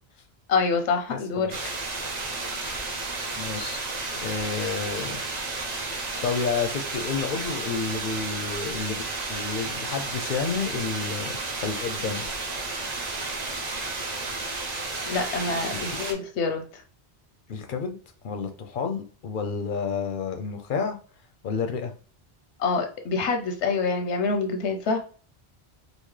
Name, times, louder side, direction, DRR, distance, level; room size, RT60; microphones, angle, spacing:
voice 1, 0.5-1.5 15.1-16.8 22.6-25.0, left 4 dB, 90° left, 5 dB, 1.0 m, -26 dB
voice 2, 1.1-1.6 3.4-3.9 4.1-5.2 5.8-9.0 9.3-12.3 15.7-16.0 17.5-18.0 18.2-21.0 21.4-21.9, left 5 dB, 60° left, 6 dB, 0.6 m, -30 dB
sound 1, 1.5-16.1, right 3 dB, 45° right, 0.7 m, -32 dB
4.0 x 2.0 x 3.1 m, 0.40 s
omnidirectional pair, 1.1 m